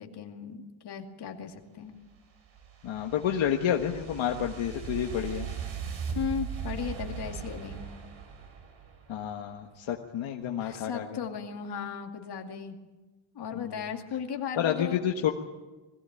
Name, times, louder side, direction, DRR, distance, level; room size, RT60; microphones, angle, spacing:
voice 1, 0.0-1.9 6.1-7.9 10.6-12.8 13.3-15.0, left 7 dB, 55° left, 3 dB, 2.6 m, -36 dB
sound 1, 2.1-9.3, right 7 dB, 80° right, 3.4 m, -39 dB
voice 2, 2.8-5.5 9.1-11.2 13.5-13.9 14.6-15.3, left 9 dB, 80° left, 2 dB, 1.5 m, -30 dB
21.0 x 16.5 x 8.9 m, 1.2 s
cardioid pair, 145°, 47 cm